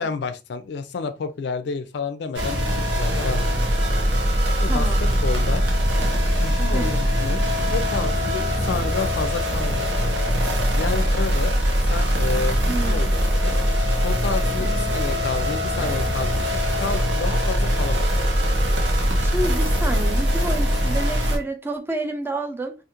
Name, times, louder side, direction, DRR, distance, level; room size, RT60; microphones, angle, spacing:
voice 1, 0.0-3.8 4.5-5.6 6.4-7.5 7.7-10.4 10.7-11.5 11.9-13.1 13.4-13.6 14.0-18.1, left 4 dB, 65° left, 0.3 m, -30 dB
sound 1, 2.3-21.4, equal, 85° right, 0.8 m, -22 dB
voice 2, 4.6-5.0 6.7-7.0 12.7-13.3 14.6-14.9 19.2-22.7, right 2 dB, 10° right, 0.4 m, -29 dB
2.5 x 2.4 x 2.8 m
head